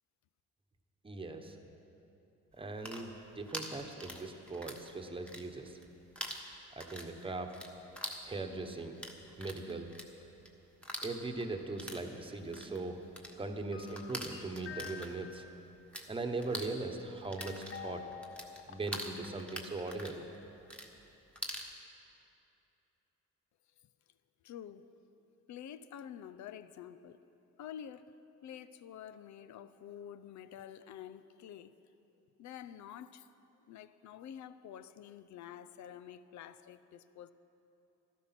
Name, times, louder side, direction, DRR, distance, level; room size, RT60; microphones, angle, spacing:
voice 1, 1.0-1.6 2.5-3.1 3.4-5.8 6.7-7.5 8.2-9.0 9.4-9.9 11.0-13.0 13.4-15.4 16.1-18.0 18.7-20.3, right 3 dB, 15° right, 1.2 m, -40 dB
sound 1, 2.6-4.9 5.1-5.9 6.1-16.1 16.3-21.7, equal, 5° left, 1.5 m, -45 dB
sound 2, 13.7-15.6 17.4-19.2 19.4-19.5, left 8 dB, 45° left, 0.8 m, -48 dB
voice 2, 24.4-24.9 25.5-27.2 27.6-28.1 28.4-31.8 32.4-33.3 33.7-37.3, left 9 dB, 70° left, 0.6 m, -48 dB
14.0 x 12.0 x 6.0 m
cardioid pair, 90°, 30 cm